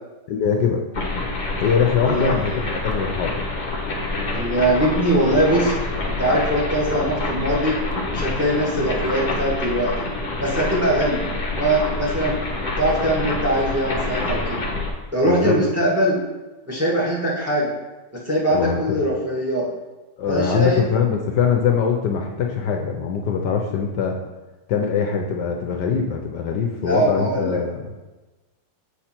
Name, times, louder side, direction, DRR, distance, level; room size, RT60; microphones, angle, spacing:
voice 1, 0.3-0.8 1.6-3.4 15.3-15.6 18.5-19.2 20.2-24.2 24.7-27.9, left 6 dB, 70° left, 2 dB, 1.2 m, -22 dB
sound 1, 0.9-14.9, left 2 dB, 35° left, 0.9 m, -27 dB
voice 2, 2.0-2.6 4.3-5.7 6.2-7.8 8.1-10.0 10.4-12.4 12.8-14.6 15.1-16.2 16.6-17.7 18.2-19.7 20.3-20.8 26.8-27.6, right 1 dB, 10° right, -5 dB, 1.5 m, -21 dB
7.2 x 5.1 x 4.4 m, 1.2 s
omnidirectional pair, 2.0 m